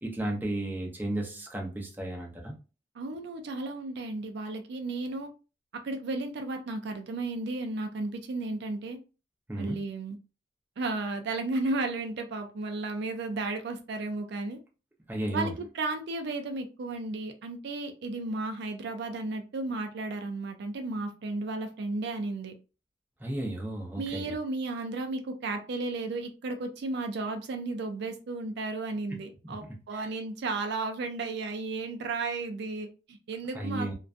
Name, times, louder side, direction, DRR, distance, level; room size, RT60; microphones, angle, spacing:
voice 1, 0.0-2.5 9.5-9.8 15.1-15.5 23.2-24.3 29.9-30.1 33.5-33.9, right 1 dB, 10° right, 0.6 m, -33 dB
voice 2, 3.0-5.3 5.8-9.0 9.6-10.2 10.8-14.6 15.3-22.5 24.0-33.9, right 3 dB, 65° right, 0.4 m, -34 dB
2.5 x 2.2 x 2.4 m
head